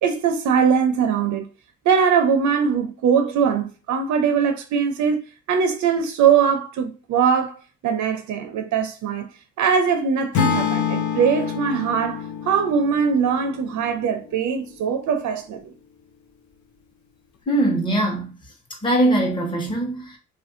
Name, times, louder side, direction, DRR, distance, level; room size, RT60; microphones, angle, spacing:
voice 1, 0.0-1.5 1.8-5.2 5.5-7.6 7.8-9.3 9.6-15.7, right 6 dB, 75° right, 0.6 m, -21 dB
Acoustic guitar / Strum, 10.3-14.6, left 8 dB, 70° left, 0.6 m, -27 dB
voice 2, 17.5-18.3 18.8-20.2, right 1 dB, 15° left, 0.9 m, -21 dB
3.1 x 2.5 x 2.6 m
cardioid pair, 90°, 30 cm